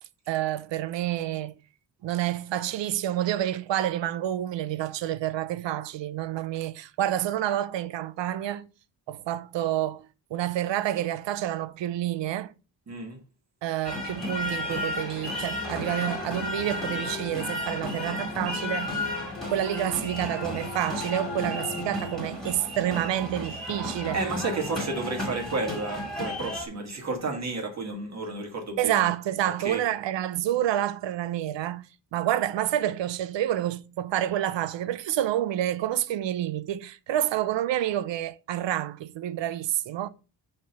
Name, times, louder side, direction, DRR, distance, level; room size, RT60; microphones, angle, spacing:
voice 1, 0.3-1.5 2.0-8.7 9.1-12.5 13.6-19.0 19.5-24.2 28.8-31.8 32.1-40.1, right 12 dB, 80° right, 0.7 m, -28 dB
voice 2, 12.9-13.2 24.1-29.1 29.6-29.8, right 3 dB, 35° right, 1.9 m, -31 dB
sound 1, 13.8-26.7, left 1 dB, ahead, 2.1 m, -33 dB
sound 2, 14.3-22.7, left 6 dB, 30° left, 0.5 m, -40 dB
5.4 x 4.5 x 5.3 m
wide cardioid pair, 165°, 44 cm